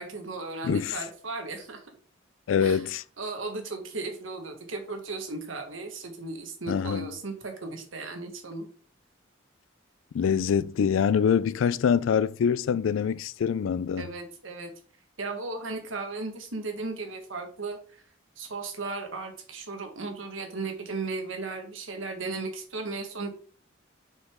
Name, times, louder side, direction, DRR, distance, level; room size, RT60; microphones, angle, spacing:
voice 1, 0.0-1.8 2.6-2.8 3.2-8.7 14.0-14.7 15.2-18.0 18.4-23.3, right 3 dB, 85° right, 1.5 m, -36 dB
voice 2, 0.6-1.0 2.5-3.0 6.7-7.1 10.1-14.1, left 7 dB, 80° left, 0.3 m, -25 dB
6.3 x 5.0 x 3.6 m
head